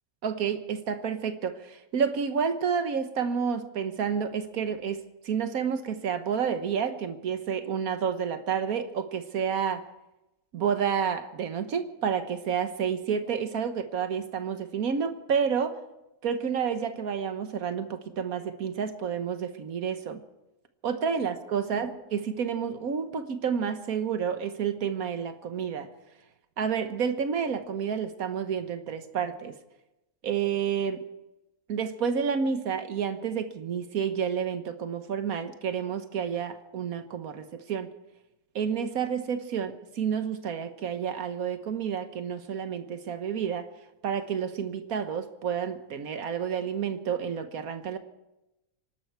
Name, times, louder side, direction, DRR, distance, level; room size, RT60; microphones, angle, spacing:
voice 1, 0.2-9.9 10.5-15.8 16.2-20.2 20.8-25.9 26.6-29.5 30.2-31.0 31.7-37.9 38.5-43.7 44.0-48.0, right 7 dB, 85° right, 9 dB, 1.6 m, -30 dB
26.0 x 12.0 x 4.7 m, 0.96 s
omnidirectional pair, 1.5 m